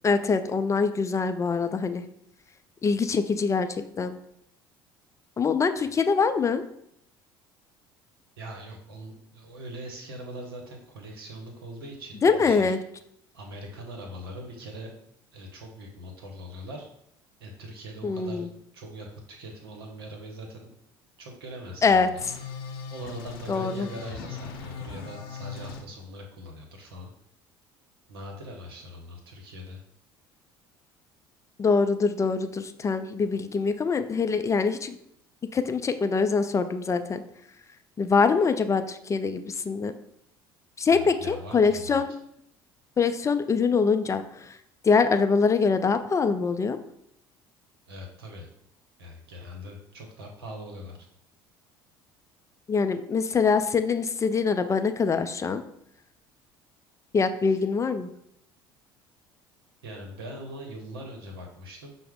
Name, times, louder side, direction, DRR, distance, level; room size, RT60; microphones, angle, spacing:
voice 1, 0.0-2.0 2.8-4.2 5.4-6.6 12.2-12.8 18.0-18.5 21.8-22.1 23.5-23.9 31.6-35.0 35.5-37.2 38.0-39.9 40.8-42.1 43.0-44.5 44.8-46.8 52.7-55.6 57.1-58.1, left 5 dB, 25° left, 9 dB, 0.3 m, -24 dB
voice 2, 8.4-12.8 13.3-14.9 15.3-16.9 17.4-18.5 18.7-20.7 21.2-22.2 22.9-27.1 28.1-29.8 40.9-42.0 47.9-48.5 49.0-51.1 57.5-57.6 59.8-61.9, equal, 85° right, 2 dB, 0.8 m, -41 dB
sound 1, 22.2-25.8, left 5 dB, 85° left, 0.6 m, -39 dB
5.6 x 2.0 x 3.5 m, 0.73 s
hypercardioid pair, 65°, 12 cm